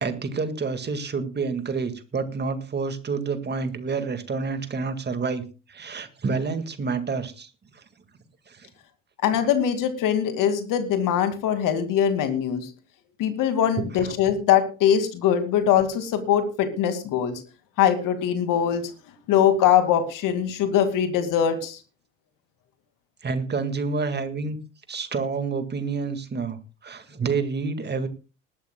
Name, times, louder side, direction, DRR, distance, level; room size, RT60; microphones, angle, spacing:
voice 1, 0.0-5.4 5.7-7.5 8.5-8.7 13.8-13.9 23.2-24.6 24.9-28.1, right 4 dB, 25° right, 9 dB, 2.0 m, -28 dB
voice 2, 9.2-12.7 13.2-17.4 17.8-18.8 19.3-21.8, left 9 dB, 50° left, 8 dB, 2.3 m, -22 dB
20.0 x 13.0 x 2.3 m, 0.33 s
hypercardioid pair, 65°, 41 cm